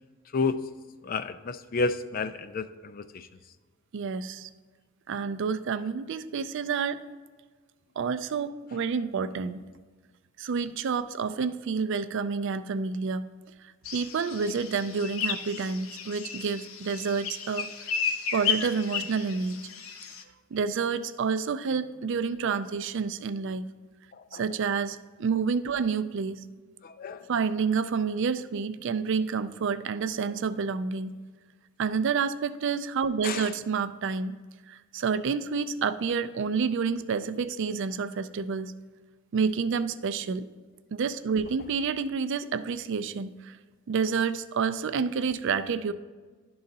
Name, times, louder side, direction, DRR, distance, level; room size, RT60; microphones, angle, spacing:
voice 1, 1.0-3.3 24.2-24.4 26.8-27.3 33.2-33.5, left 4 dB, 40° left, 12 dB, 0.3 m, -31 dB
voice 2, 3.9-4.5 5.1-7.0 8.0-9.6 10.4-13.2 13.9-17.7 18.3-19.6 20.5-23.7 24.3-26.4 27.3-31.2 31.8-34.4 34.7-38.7 39.3-40.5 40.9-43.6 43.9-45.9, right 5 dB, 60° right, 12 dB, 0.4 m, -29 dB
sound 1, 13.9-20.2, left 7 dB, 70° left, 0.7 m, -33 dB
11.0 x 3.9 x 4.0 m, 1.4 s
head